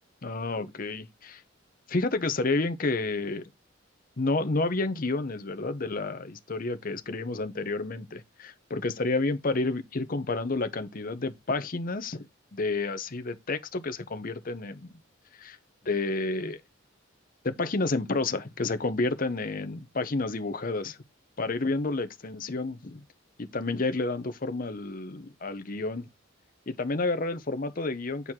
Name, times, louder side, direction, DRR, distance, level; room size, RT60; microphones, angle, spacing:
voice 1, 0.2-1.4 1.9-3.5 4.2-12.3 12.5-14.9 15.4-15.6 15.8-16.6 17.4-21.0 21.4-23.0 23.4-26.1 26.7-28.3, left 3 dB, 45° left, 0.8 m, -30 dB
8.1 x 4.5 x 3.7 m
head